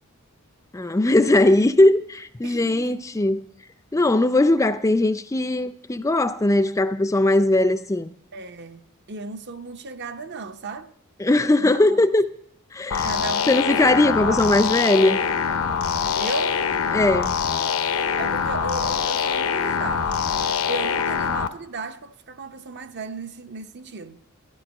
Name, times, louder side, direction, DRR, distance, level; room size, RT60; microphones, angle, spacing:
voice 1, 0.7-3.4 3.9-8.1 11.2-12.3 12.7-13.1 13.5-15.2 16.9-17.3, left 2 dB, 15° left, 0.4 m, -19 dB
voice 2, 2.4-2.9 8.3-10.9 11.6-12.1 13.0-14.7 16.1-16.6 18.0-20.2 20.7-24.2, right 3 dB, 50° right, 0.8 m, -35 dB
sound 1, 12.9-21.5, left 6 dB, 75° left, 0.8 m, -24 dB
14.0 x 11.0 x 5.4 m
head